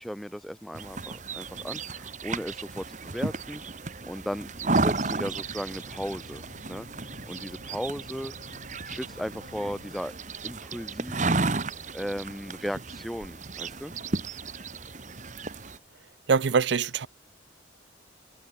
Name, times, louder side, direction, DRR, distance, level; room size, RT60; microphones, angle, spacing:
voice 1, 0.0-3.6 4.0-6.9 7.3-8.3 8.8-10.1 10.4-11.5 11.9-13.9, equal, ahead, 0.3 m, -36 dB
sound 1, 0.7-15.8, right 3 dB, 40° right, 1.3 m, -33 dB
sound 2, 4.8-10.0, left 2 dB, 65° left, 1.3 m, -51 dB
voice 2, 16.3-17.1, right 5 dB, 70° right, 0.5 m, -23 dB
head